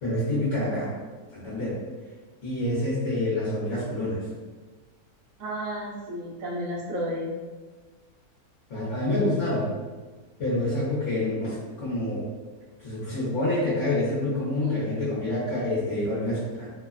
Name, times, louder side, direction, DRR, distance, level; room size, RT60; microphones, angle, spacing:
voice 1, 0.0-0.9 1.3-1.8 2.4-4.2 8.7-9.7 10.4-12.3 12.8-16.7, left 1 dB, 55° left, -10 dB, 1.1 m, -27 dB
voice 2, 5.4-7.3 14.6-14.7, equal, 65° right, -4 dB, 1.1 m, -32 dB
3.1 x 2.1 x 2.4 m, 1.3 s
omnidirectional pair, 1.7 m